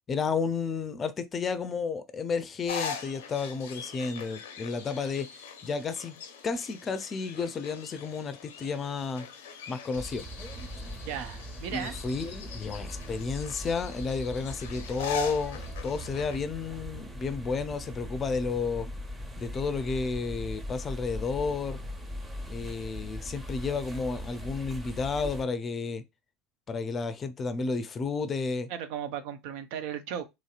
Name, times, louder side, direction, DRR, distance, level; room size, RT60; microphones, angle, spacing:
voice 1, 0.1-9.3 9.7-10.3 11.7-18.9 19.4-21.8 22.5-26.0 26.7-28.7, left 4 dB, 35° left, 0.5 m, -32 dB
sound 1, 2.7-16.4, left 6 dB, 85° left, 0.5 m, -42 dB
sound 2, 9.9-25.4, equal, 20° right, 1.0 m, -40 dB
voice 2, 11.1-11.9 28.7-30.2, right 9 dB, 70° right, 0.5 m, -36 dB
3.0 x 2.8 x 2.3 m
hypercardioid pair, 80°, 0 cm